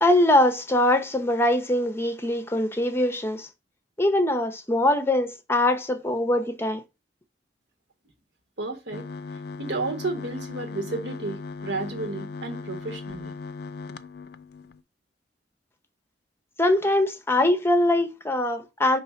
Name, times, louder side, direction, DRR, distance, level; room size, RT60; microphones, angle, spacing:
voice 1, 0.0-3.5 4.0-6.8 16.6-19.0, left 1 dB, 15° left, 0.8 m, -22 dB
voice 2, 8.6-9.1 9.6-13.3, right 3 dB, 70° right, 1.7 m, -32 dB
sound 1, 8.9-14.8, left 4 dB, 60° left, 0.5 m, -38 dB
5.5 x 3.3 x 5.6 m
head